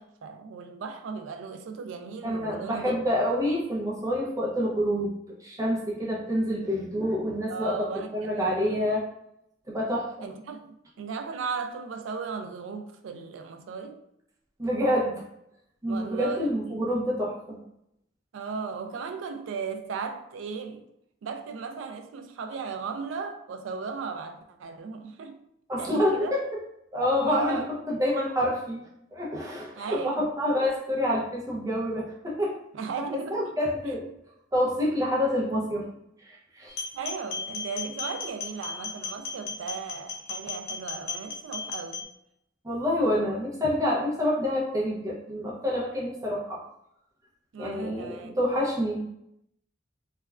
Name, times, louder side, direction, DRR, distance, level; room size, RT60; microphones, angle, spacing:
voice 1, 0.0-3.0 7.5-8.9 10.2-14.0 15.9-17.0 18.3-20.8 21.2-25.4 25.8-26.4 27.2-27.7 29.8-30.3 32.7-33.4 33.8-33.9 36.9-42.1 47.5-48.4, right 5 dB, 75° right, 7 dB, 0.3 m, -36 dB
voice 2, 2.2-5.1 5.4-9.1 9.7-10.3 14.6-15.2 15.8-17.6 25.7-26.4 26.9-28.8 29.1-32.5 33.0-34.1 34.5-35.9 36.2-36.8 42.6-46.6 47.6-49.0, left 1 dB, 15° right, -4 dB, 0.5 m, -27 dB
sound 1, 36.7-42.0, left 5 dB, 55° left, 0.5 m, -35 dB
3.1 x 2.2 x 2.3 m, 0.79 s
head